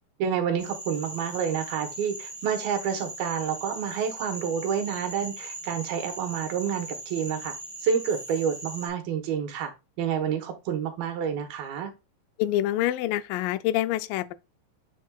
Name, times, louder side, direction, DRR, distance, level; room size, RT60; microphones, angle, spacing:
voice 1, 0.2-7.5 7.8-9.7 10.0-11.9, right 7 dB, 85° right, 3.1 m, -29 dB
Frog, 0.6-8.9, right 2 dB, 5° right, 3.9 m, -40 dB
voice 2, 12.4-14.3, left 14 dB, 80° left, 2.1 m, -26 dB
8.1 x 6.2 x 2.3 m
omnidirectional pair, 4.1 m